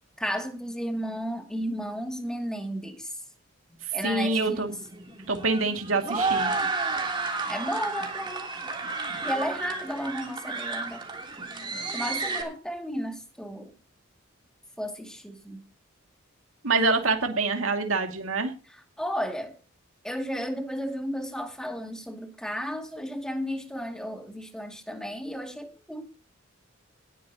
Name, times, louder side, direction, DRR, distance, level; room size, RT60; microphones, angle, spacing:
voice 1, 0.2-3.2 3.7-4.7 7.5-8.5 9.2-11.0 11.9-13.7 14.8-15.6 18.7-19.6 20.0-26.1, equal, 5° left, 2.3 m, -33 dB
voice 2, 4.0-4.7 5.3-6.5 16.6-18.5, right 3 dB, 90° right, 2.2 m, -25 dB
sound 1, 4.4-12.4, right 3 dB, 25° right, 3.0 m, -31 dB
19.0 x 10.5 x 2.9 m
head